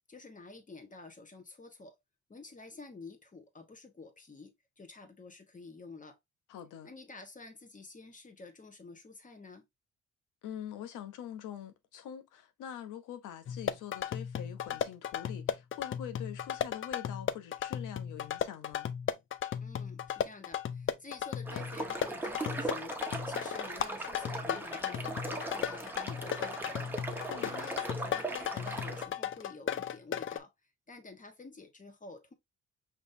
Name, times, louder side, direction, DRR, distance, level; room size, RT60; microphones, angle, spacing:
voice 1, 0.1-2.0 2.3-6.2 6.8-9.7 19.6-26.9 27.4-32.3, left 3 dB, 25° left, 1.2 m, -50 dB
voice 2, 6.5-6.9 10.4-18.9 27.2-27.7, left 10 dB, 85° left, 0.8 m, -44 dB
sound 1, 13.5-30.4, left 9 dB, 45° left, 0.4 m, -36 dB
sound 2, 21.4-29.0, right 2 dB, 5° right, 0.9 m, -39 dB
5.4 x 3.0 x 2.6 m
cardioid pair, 90°, 30 cm